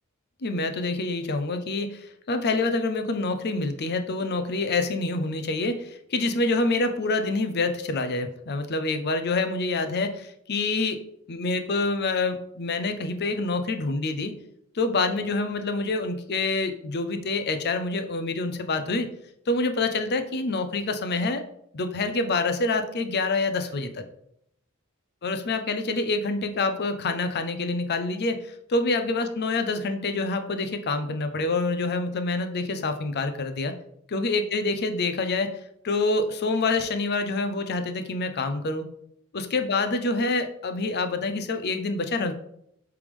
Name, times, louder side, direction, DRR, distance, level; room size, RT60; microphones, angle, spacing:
voice 1, 0.4-11.0 11.3-14.3 14.7-19.1 19.5-21.4 21.7-24.0 25.2-33.7 34.1-35.5 35.8-38.8 39.3-42.3, left 3 dB, 50° left, 8 dB, 0.6 m, -26 dB
8.2 x 3.4 x 3.4 m, 0.73 s
head